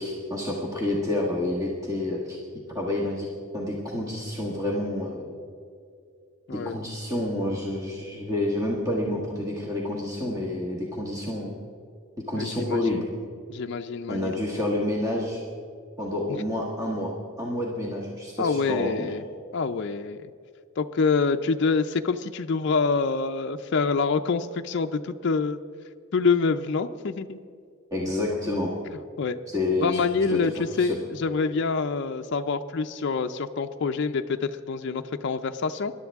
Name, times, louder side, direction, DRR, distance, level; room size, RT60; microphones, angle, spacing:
voice 1, 0.0-2.4 2.7-3.3 3.5-5.2 6.5-11.6 12.3-13.1 14.1-15.4 16.0-19.1 27.9-28.7 29.5-30.0 30.3-31.0, left 1 dB, 15° right, -3 dB, 1.4 m, -29 dB
voice 2, 12.4-13.0 13.5-14.3 16.3-16.4 18.4-19.2 19.5-20.3 20.8-25.6 26.1-27.4 29.2-29.4 29.8-35.9, left 4 dB, 55° left, 6 dB, 0.4 m, -26 dB
21.0 x 11.5 x 3.5 m, 2.3 s
head